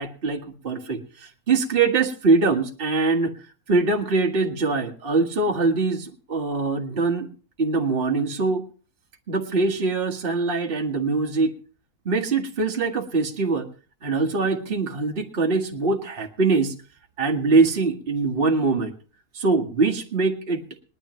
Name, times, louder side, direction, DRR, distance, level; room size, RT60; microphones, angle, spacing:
voice 1, 0.0-3.3 3.7-7.3 7.6-8.7 9.3-11.6 12.1-13.7 14.0-16.7 17.2-18.9 19.3-20.8, right 3 dB, 40° right, 2 dB, 1.7 m, -23 dB
20.0 x 12.0 x 3.1 m, 0.37 s
omnidirectional pair, 1.6 m